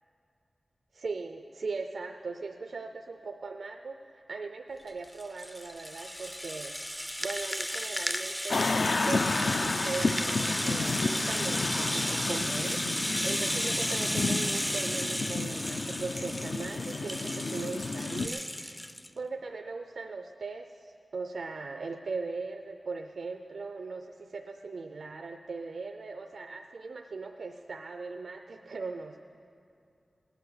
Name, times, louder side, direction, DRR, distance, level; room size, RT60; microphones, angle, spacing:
voice 1, 0.9-6.7 7.2-18.8 19.1-29.2, right 4 dB, 85° right, 5 dB, 0.5 m, -39 dB
Rattle (instrument), 4.9-19.1, equal, 5° left, 0.4 m, -34 dB
sound 1, 8.5-18.3, left 3 dB, 70° left, 0.4 m, -32 dB
19.5 x 9.1 x 6.6 m, 2.5 s
wide cardioid pair, 80°, 0 cm